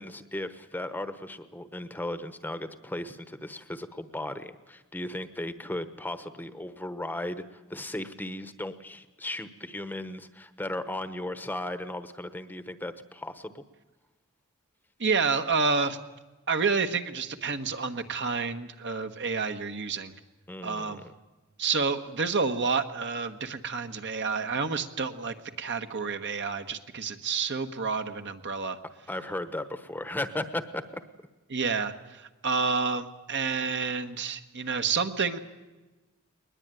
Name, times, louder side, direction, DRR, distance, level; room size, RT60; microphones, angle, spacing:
voice 1, 0.0-13.6 20.5-21.1 29.1-31.0, left 1 dB, 10° left, 11 dB, 1.0 m, -36 dB
voice 2, 15.0-16.0 16.5-20.1 20.6-21.0 21.6-28.8 31.5-35.4, right 5 dB, 55° right, 8 dB, 1.3 m, -29 dB
21.0 x 20.5 x 9.1 m, 1.1 s
head